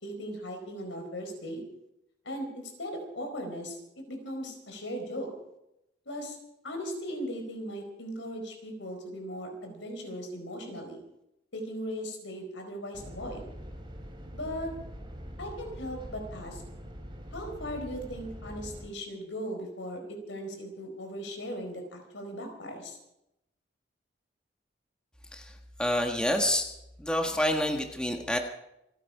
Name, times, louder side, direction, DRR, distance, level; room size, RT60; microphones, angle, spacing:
voice 1, 0.0-1.6 2.2-3.8 4.1-5.3 6.1-6.4 6.6-11.0 11.5-13.4 14.3-14.7 15.4-16.6 17.3-23.0, equal, 90° left, 4 dB, 4.5 m, -38 dB
sound 1, 12.9-18.9, equal, 25° right, 2.9 m, -43 dB
voice 2, 25.3-26.7 27.0-28.4, left 1 dB, 5° left, 3 dB, 1.4 m, -28 dB
27.5 x 10.0 x 4.8 m, 0.84 s
head